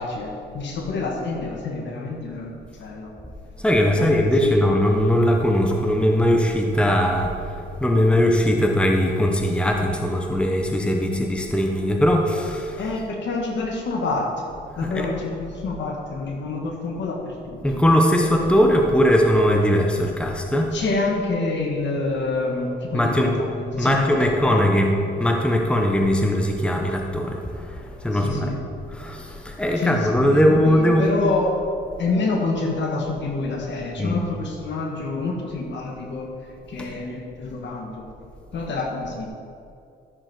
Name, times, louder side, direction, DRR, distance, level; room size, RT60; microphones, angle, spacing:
voice 1, 0.0-2.5 2.8-3.1 3.9-4.1 4.4-4.5 12.8-14.3 14.8-17.2 17.5-17.6 20.7-23.3 23.7-24.6 28.2-28.6 29.8-30.0 30.3-31.5 32.0-36.3 36.7-38.0 38.5-39.3, left 3 dB, 65° left, 0 dB, 1.9 m, -27 dB
voice 2, 3.6-13.0 14.8-15.1 17.6-20.8 22.9-23.4 23.8-28.5 28.9-31.2 34.0-34.2 36.8-36.9, equal, 5° left, 1 dB, 1.2 m, -20 dB
13.0 x 7.2 x 4.6 m, 2.4 s
cardioid pair, 90°, 20 cm